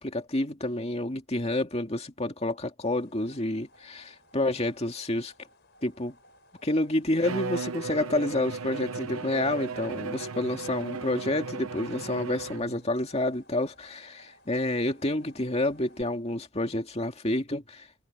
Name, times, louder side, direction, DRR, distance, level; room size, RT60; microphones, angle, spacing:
voice 1, 0.0-5.3 5.8-6.1 6.6-17.9, left 1 dB, 30° left, 2.4 m, -29 dB
sound 1, 2.8-16.0, equal, 55° left, 4.8 m, -59 dB
Bowed string instrument, 7.2-12.9, right 4 dB, 80° right, 0.9 m, -36 dB
head